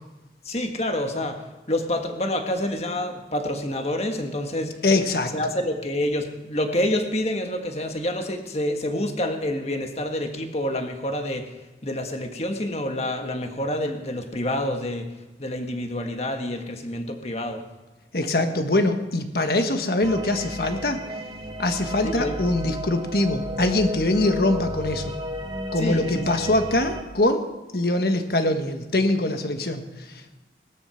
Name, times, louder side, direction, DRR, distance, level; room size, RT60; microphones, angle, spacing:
voice 1, 0.4-1.4 1.7-4.7 5.3-11.5 11.8-15.1 15.4-17.6 22.0-22.4 25.8-26.3, left 1 dB, 35° left, 5 dB, 1.7 m, -27 dB
voice 2, 4.8-5.3 18.1-21.0 21.6-25.1 25.7-27.4 27.7-29.8, left 2 dB, 55° left, 6 dB, 1.5 m, -23 dB
sound 1, 20.0-27.0, equal, 25° right, 1.0 m, -33 dB
18.5 x 13.0 x 5.9 m, 1.1 s
head